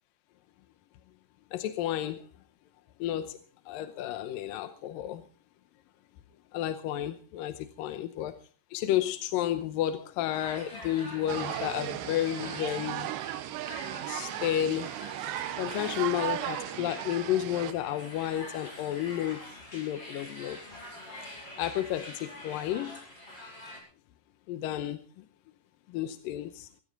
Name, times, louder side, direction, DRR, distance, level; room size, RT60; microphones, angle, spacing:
voice 1, 1.5-2.3 3.0-3.4 3.7-5.2 6.5-8.4 8.7-13.1 14.1-14.9 15.6-19.5 19.7-20.6 21.6-23.0 24.5-25.3 25.9-26.7, left 12 dB, 75° left, 2.2 m, -32 dB
sound 1, 10.3-23.8, left 1 dB, 25° left, 7.7 m, -45 dB
sound 2, 11.3-17.7, right 14 dB, 90° right, 3.1 m, -36 dB
21.5 x 15.0 x 3.9 m
omnidirectional pair, 4.8 m